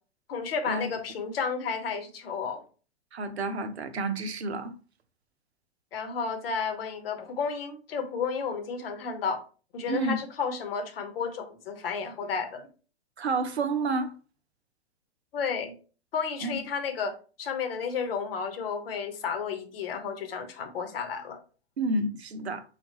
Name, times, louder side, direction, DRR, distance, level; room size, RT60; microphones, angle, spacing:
voice 1, 0.3-2.6 5.9-9.4 9.7-12.7 15.3-15.7 16.1-21.4, left 5 dB, 60° left, 1.0 m, -32 dB
voice 2, 3.1-4.7 9.9-10.2 13.2-14.1 16.4-16.5 21.8-22.6, right 3 dB, 75° right, 0.7 m, -29 dB
5.1 x 2.4 x 2.8 m
figure-of-eight pair, 105°, 32 cm